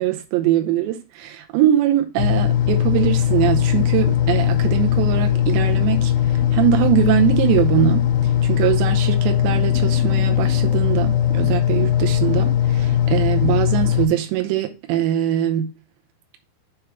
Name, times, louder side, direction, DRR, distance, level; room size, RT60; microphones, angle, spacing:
voice 1, 0.0-15.7, right 11 dB, 85° right, 3.0 m, -22 dB
sound 1, 2.2-14.1, left 10 dB, 70° left, 2.5 m, -19 dB
7.6 x 3.8 x 4.5 m
omnidirectional pair, 5.0 m